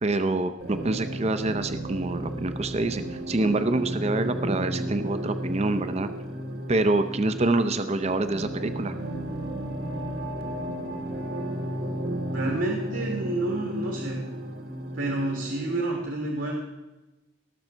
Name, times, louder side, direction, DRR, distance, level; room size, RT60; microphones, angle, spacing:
voice 1, 0.0-6.1 6.7-9.0, right 2 dB, 35° right, 10 dB, 0.6 m, -26 dB
sound 1, 0.6-15.8, right 1 dB, 55° right, 1.3 m, -33 dB
voice 2, 12.3-14.2 15.0-16.5, right 2 dB, 75° right, 0 dB, 2.0 m, -29 dB
18.5 x 6.7 x 4.5 m, 1.0 s
head